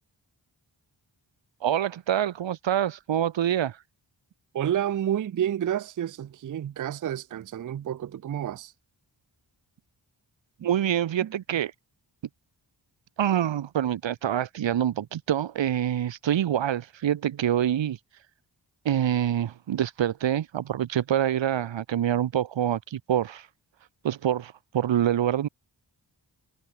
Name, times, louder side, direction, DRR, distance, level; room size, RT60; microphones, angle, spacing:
voice 1, 1.6-3.8 10.6-11.7 13.2-18.0 18.8-23.5 24.0-25.5, right 10 dB, 85° right, 0.7 m, -26 dB
voice 2, 4.5-8.7 11.2-11.3, right 10 dB, 45° right, 0.4 m, -29 dB
wide cardioid pair, 65°, 44 cm